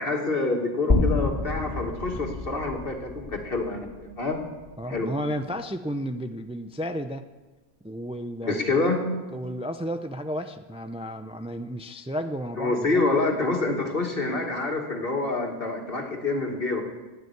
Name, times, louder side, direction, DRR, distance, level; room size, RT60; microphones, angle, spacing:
voice 1, 0.0-4.4 4.9-5.1 8.4-9.1 12.6-16.8, left 3 dB, 65° left, 1 dB, 2.5 m, -27 dB
sound 1, 0.9-5.1, left 2 dB, 30° left, 2.8 m, -29 dB
voice 2, 4.8-7.2 7.8-13.1, equal, 5° right, 8 dB, 0.5 m, -33 dB
14.0 x 9.8 x 9.5 m, 1.2 s
omnidirectional pair, 1.1 m